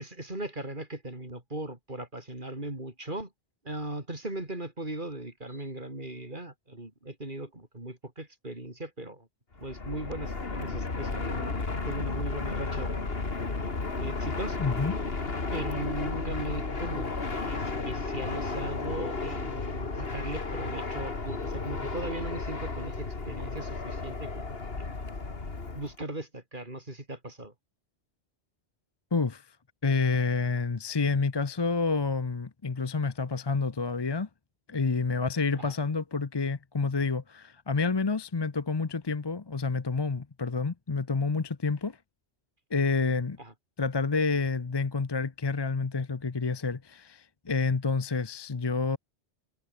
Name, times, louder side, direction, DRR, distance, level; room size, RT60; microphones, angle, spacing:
voice 1, 0.0-3.3 3.6-9.3 9.6-11.6 11.9-13.0 13.9-14.6 15.5-24.8 25.8-27.5 35.6-35.7 43.4-43.5, right 1 dB, 45° right, 4.6 m, -38 dB
Fixed-wing aircraft airplane, 9.6-26.0, left 3 dB, 60° left, 2.5 m, -33 dB
voice 2, 14.6-14.9 29.1-29.6 29.8-34.3 34.7-42.0 42.7-43.4 43.8-49.0, left 4 dB, 25° left, 0.7 m, -29 dB
omnidirectional pair, 1.2 m